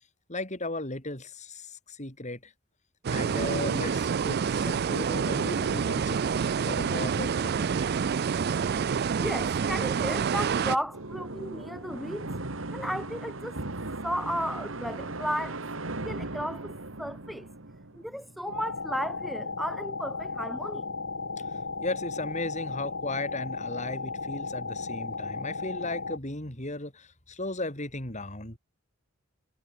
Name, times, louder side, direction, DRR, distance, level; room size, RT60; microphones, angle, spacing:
voice 1, 0.3-2.5 3.1-6.2 6.6-7.7 21.8-28.6, left 2 dB, 35° left, 5.5 m, -36 dB
sound 1, 3.0-10.8, right 6 dB, 50° right, 0.4 m, -27 dB
voice 2, 9.2-12.3 12.7-13.6 14.0-15.6 16.0-17.5 18.0-20.8, equal, ahead, 0.9 m, -34 dB
sound 2, 9.7-18.5, right 2 dB, 75° right, 2.2 m, -38 dB
sound 3, 18.4-26.2, left 4 dB, 65° left, 1.8 m, -35 dB
head